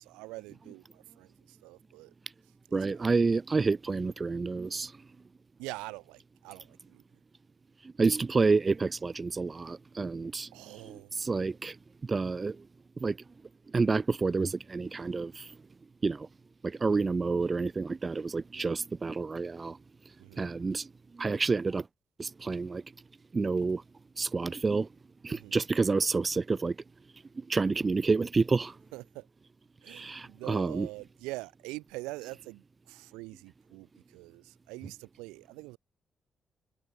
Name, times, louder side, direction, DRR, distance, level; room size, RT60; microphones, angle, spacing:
voice 1, 0.0-2.1 2.7-2.8 5.6-7.0 10.5-11.3 18.5-18.7 20.2-20.4 25.3-25.6 28.9-29.3 29.8-35.8, right 24 dB, 85° right, 2.4 m, -44 dB
voice 2, 2.7-4.9 7.8-10.5 10.8-11.8 12.0-12.6 13.0-13.2 13.7-15.5 16.0-16.3 16.6-19.8 20.4-20.9 21.2-21.8 22.2-22.8 23.3-23.8 24.2-24.9 25.2-26.8 27.5-28.8 29.9-30.9, right 4 dB, 35° right, 0.8 m, -29 dB
hypercardioid pair, 45°, 0 cm